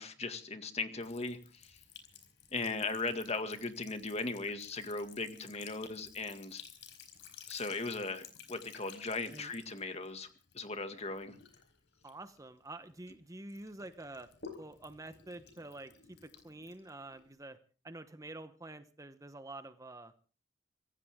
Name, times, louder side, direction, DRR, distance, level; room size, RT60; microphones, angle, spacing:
voice 1, 0.0-1.8 2.5-6.6 7.5-10.3 10.5-11.4, left 3 dB, 35° left, 8 dB, 2.0 m, -38 dB
Sink (filling or washing) / Trickle dribble, 1.0-13.1 13.5-17.4, left 7 dB, 70° left, 4.6 m, -55 dB
voice 2, 12.0-14.3 14.6-17.6 17.8-20.1, right 2 dB, 20° right, 11 dB, 1.0 m, -48 dB
25.0 x 15.0 x 3.6 m, 0.38 s
head